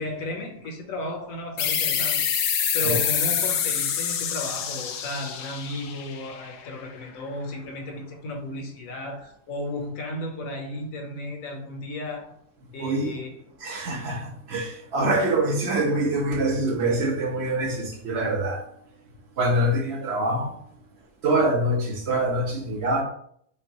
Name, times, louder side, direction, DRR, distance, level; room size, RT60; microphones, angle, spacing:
voice 1, 0.0-2.3 2.7-12.3 12.7-13.6, left 1 dB, 65° left, 1 dB, 1.1 m, -34 dB
sound 1, 1.6-6.9, left 8 dB, 85° left, 1.1 m, -26 dB
voice 2, 12.8-13.1 13.6-18.6 19.4-20.5 21.2-23.0, right 1 dB, 50° right, 1 dB, 1.0 m, -25 dB
5.3 x 2.3 x 2.9 m, 0.65 s
omnidirectional pair, 1.7 m